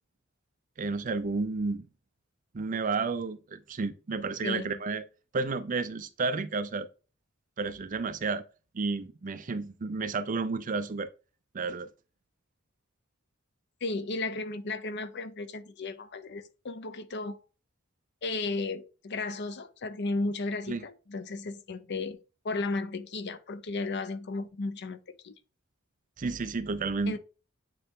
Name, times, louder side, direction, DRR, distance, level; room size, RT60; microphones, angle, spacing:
voice 1, 0.8-1.9 2.5-5.0 5.3-6.9 7.6-8.4 8.7-11.1 11.5-11.9 20.7-20.8 26.2-27.2, right 4 dB, 40° right, 0.5 m, -31 dB
voice 2, 4.4-4.8 13.8-17.4 18.2-22.2 22.4-25.3 27.1-27.2, left 3 dB, 55° left, 0.6 m, -34 dB
9.1 x 3.3 x 3.6 m
head